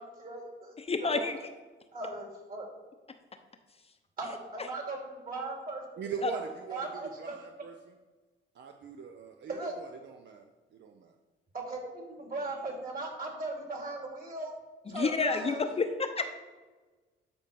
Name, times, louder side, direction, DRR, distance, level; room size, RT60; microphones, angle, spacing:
voice 1, 0.0-1.4 1.9-2.7 4.2-6.0 6.3-6.4 6.7-7.4 9.5-9.7 11.5-14.5 14.9-15.6, right 2 dB, 45° right, 0 dB, 3.3 m, -38 dB
voice 2, 0.8-1.4 6.2-6.3 14.9-16.3, left 4 dB, 30° left, 7 dB, 0.7 m, -30 dB
voice 3, 6.0-7.9 8.5-11.1, right 6 dB, 65° right, 4 dB, 0.7 m, -42 dB
12.5 x 4.5 x 5.3 m, 1.3 s
cardioid pair, 90°, 20 cm